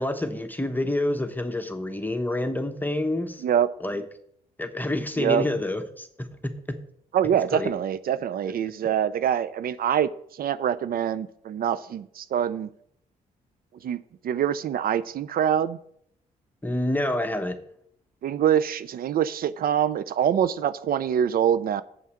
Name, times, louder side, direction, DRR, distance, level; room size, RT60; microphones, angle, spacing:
voice 1, 0.0-3.4 3.8-4.0 4.6-6.8 7.5-7.7 8.4-8.5 16.6-17.6, left 1 dB, 10° left, 1.1 m, -28 dB
voice 2, 7.1-12.7 13.8-15.8 18.2-21.8, right 9 dB, 60° right, 0.5 m, -25 dB
7.9 x 5.6 x 7.6 m
supercardioid pair, 55°, 17 cm